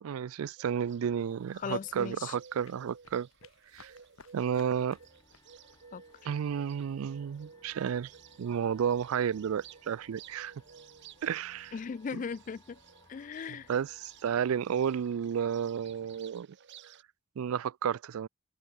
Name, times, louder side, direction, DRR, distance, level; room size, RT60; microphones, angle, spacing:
voice 1, 0.0-3.3 3.7-3.9 4.3-5.0 6.3-8.1 8.4-10.5 11.2-11.7 13.7-16.5 17.4-18.3, right 8 dB, 80° right, 0.4 m, -32 dB
Bird, 0.6-17.0, right 7 dB, 55° right, 0.7 m, -56 dB
sound 1, 1.1-16.2, left 5 dB, 75° left, 2.3 m, -65 dB
voice 2, 1.6-2.4 5.9-6.3 11.7-12.8 13.1-13.7, left 6 dB, 35° left, 0.3 m, -38 dB
sound 2, 4.9-16.2, left 2 dB, 15° left, 1.7 m, -64 dB
open air
head